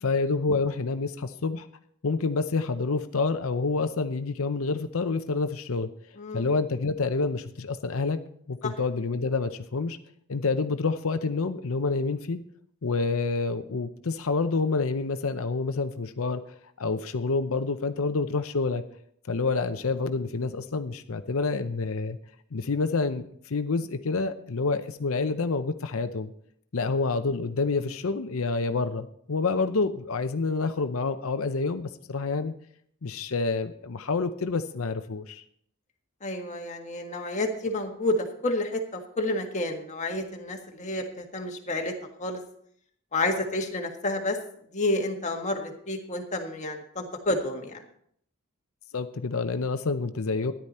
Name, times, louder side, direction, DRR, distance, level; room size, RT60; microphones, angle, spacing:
voice 1, 0.0-1.7 2.0-5.9 6.3-8.2 8.5-10.0 10.3-12.4 12.8-16.4 16.8-18.8 19.3-22.2 22.5-26.3 26.7-32.5 33.0-35.4 48.9-50.5, left 4 dB, 65° left, 9 dB, 0.7 m, -28 dB
voice 2, 6.2-6.5 8.6-8.7 36.2-41.9 42.2-42.4 43.1-44.4 44.7-47.8, left 2 dB, 35° left, 2 dB, 1.7 m, -30 dB
13.5 x 10.5 x 4.3 m, 0.65 s
head